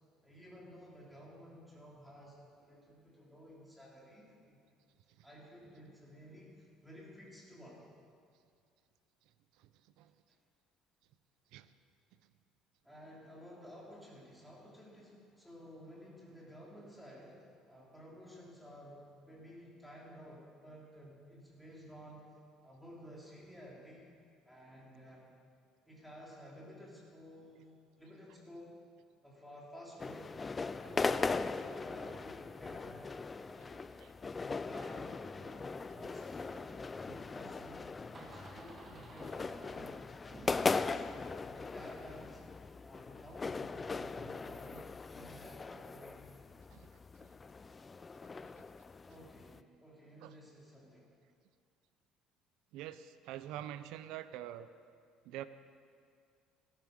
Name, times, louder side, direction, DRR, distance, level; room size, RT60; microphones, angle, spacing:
voice 1, 0.2-4.6 5.2-7.8 12.8-22.4 22.6-24.1 24.4-25.3 25.8-27.7 28.0-28.8 29.2-30.4 30.7-33.1 33.3-33.8 34.3-36.7 37.0-41.1 41.4-42.4 42.8-46.2 49.0-51.1, equal, ahead, -5 dB, 3.4 m, -54 dB
sound 1, 30.0-49.6, left 4 dB, 20° left, 0.3 m, -39 dB
Door, 35.3-43.0, right 2 dB, 20° right, 1.5 m, -58 dB
voice 2, 48.2-48.7 50.2-50.4 52.7-54.7 55.2-55.5, right 12 dB, 75° right, 13 dB, 0.7 m, -46 dB
16.0 x 13.5 x 5.3 m, 2.2 s
cardioid pair, 150°, 0 cm